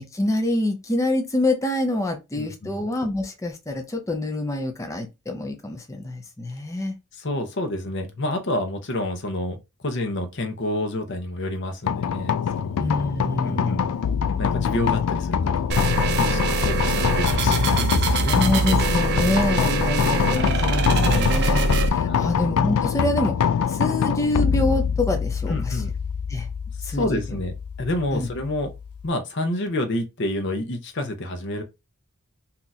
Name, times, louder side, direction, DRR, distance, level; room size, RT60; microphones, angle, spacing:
voice 1, 0.0-6.9 12.8-13.8 18.3-23.4 23.7-25.8 26.3-26.5 26.8-27.2 28.1-28.3, left 1 dB, 15° left, 0.5 m, -26 dB
voice 2, 2.4-2.8 7.1-9.6 9.8-12.8 13.4-13.9 14.4-15.9 16.2-18.4 18.8-19.3 19.7-19.8 20.9-21.3 22.0-22.4 25.5-25.9 26.8-28.7 29.0-31.6, left 1 dB, 55° left, 0.7 m, -29 dB
sound 1, 11.9-29.1, left 7 dB, 85° left, 0.3 m, -24 dB
sound 2, 15.7-21.9, right 3 dB, 50° right, 0.5 m, -23 dB
2.8 x 2.4 x 3.9 m
head